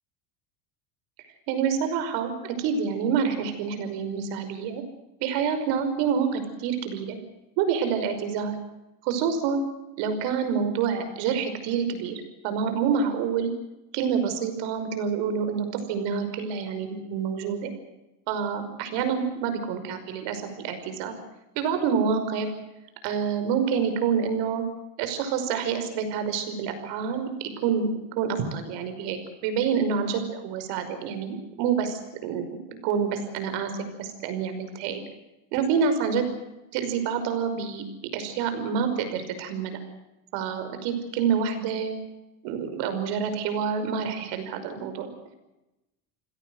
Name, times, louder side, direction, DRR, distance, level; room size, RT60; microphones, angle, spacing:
voice 1, 1.5-4.8 5.2-7.2 7.6-8.5 9.0-9.6 10.0-13.5 13.9-17.7 18.3-21.2 21.6-22.5 23.0-24.6 25.0-27.9 28.2-32.4 32.7-33.7 34.0-35.0 35.5-36.2 36.7-37.8 38.1-39.8 40.3-42.0 42.4-45.1, right 6 dB, 75° right, 9 dB, 5.6 m, -27 dB
26.5 x 17.5 x 7.9 m, 0.97 s
cardioid pair, 125°, 43 cm